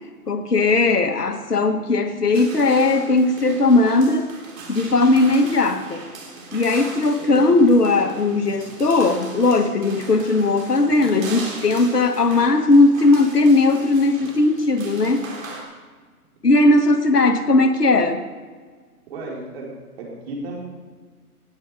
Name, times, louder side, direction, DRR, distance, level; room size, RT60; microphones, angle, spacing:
voice 1, 0.3-4.3 4.7-6.1 6.5-15.3 16.4-18.2, left 2 dB, 85° left, 8 dB, 1.5 m, -18 dB
sound 1, 2.3-15.6, right 3 dB, 55° right, 4.0 m, -39 dB
voice 2, 19.1-19.7 20.0-20.6, right 2 dB, 40° right, -3 dB, 4.4 m, -33 dB
19.0 x 7.8 x 4.9 m, 1.5 s
figure-of-eight pair, 135°, 46 cm